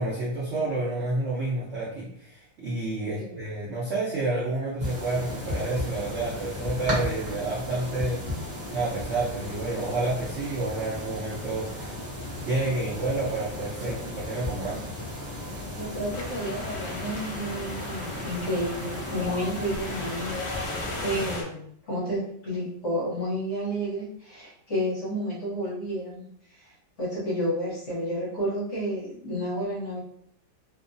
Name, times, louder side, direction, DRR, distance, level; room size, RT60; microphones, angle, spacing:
voice 1, 0.0-11.9 12.4-15.1, right 2 dB, 75° right, -6 dB, 0.6 m, -29 dB
sound 1, 4.8-21.4, left 1 dB, 35° right, 0.8 m, -35 dB
voice 2, 15.7-26.3 26.6-30.0, equal, 50° left, -7 dB, 1.1 m, -31 dB
Wind, 16.1-21.4, left 2 dB, 75° left, 1.2 m, -36 dB
2.9 x 2.1 x 2.5 m, 0.67 s
omnidirectional pair, 2.0 m